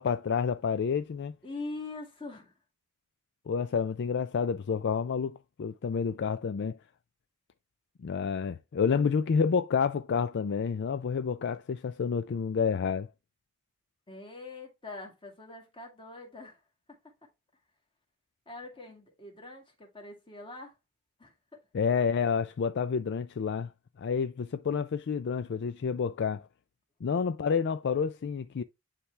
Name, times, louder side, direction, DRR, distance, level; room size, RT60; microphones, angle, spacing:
voice 1, 0.0-1.3 3.5-6.8 8.0-13.1 21.7-23.7 24.0-26.5 27.0-28.6, left 6 dB, 50° left, 0.4 m, -29 dB
voice 2, 1.4-2.6 8.9-9.1 14.1-16.6 18.5-20.8 21.2-21.6, left 2 dB, 25° left, 1.9 m, -43 dB
9.7 x 3.3 x 3.2 m
head